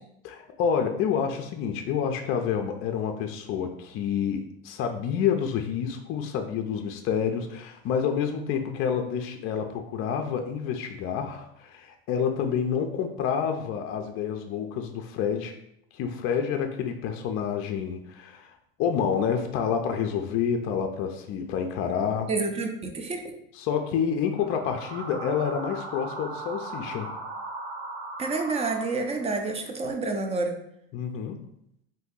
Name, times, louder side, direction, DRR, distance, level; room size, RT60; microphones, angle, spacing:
voice 1, 0.2-15.5 15.9-18.5 18.8-22.3 23.5-27.2 30.9-31.5, left 7 dB, 45° left, 5 dB, 0.4 m, -28 dB
voice 2, 22.3-23.3 28.2-30.5, right 3 dB, 20° right, 4 dB, 0.4 m, -28 dB
sound 1, 24.3-29.4, right 2 dB, 75° right, 0.7 m, -38 dB
2.6 x 2.6 x 3.7 m, 0.75 s
supercardioid pair, 110°, 32 cm